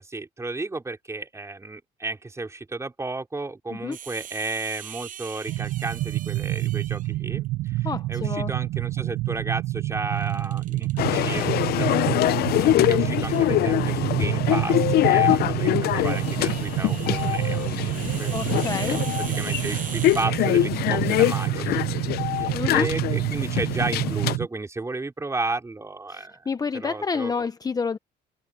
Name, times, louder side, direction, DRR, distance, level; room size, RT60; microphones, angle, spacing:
voice 1, 0.0-21.8 22.3-26.4 26.7-27.5, right 3 dB, 15° right, 4.5 m, -33 dB
sound 1, 3.9-7.2 10.1-11.6 13.3-13.5 15.6-20.8, right 9 dB, 55° right, 6.7 m, -41 dB
sound 2, 5.5-24.5, right 17 dB, 80° right, 0.6 m, -28 dB
voice 2, 7.8-8.5 18.3-19.0 22.5-22.9 26.1-28.0, left 5 dB, 20° left, 0.8 m, -29 dB
sound 3, 11.0-24.4, left 15 dB, 70° left, 0.5 m, -24 dB
cardioid pair, 110°, 17 cm